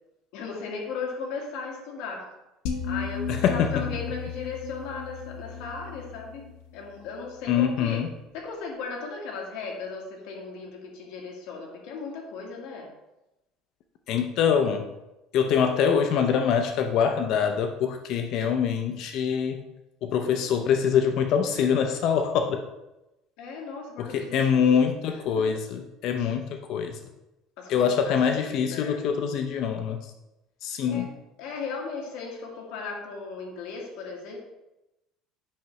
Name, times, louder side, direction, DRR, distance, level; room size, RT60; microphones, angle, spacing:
voice 1, 0.3-2.3 2.8-6.4 6.7-8.0 8.3-12.9 23.4-24.7 25.1-25.5 26.2-26.3 27.6-29.0 30.9-31.1 31.4-34.4, left 4 dB, 65° left, 0 dB, 1.6 m, -37 dB
sound 1, 2.7-7.9, left 6 dB, 85° left, 0.8 m, -35 dB
voice 2, 3.3-3.8 7.5-8.1 14.1-14.9 15.3-19.6 20.0-22.6 24.0-27.0 27.7-30.0 30.6-31.1, left 7 dB, 50° left, 6 dB, 0.6 m, -24 dB
8.5 x 5.8 x 3.1 m, 0.95 s
cardioid pair, 175°, 0 cm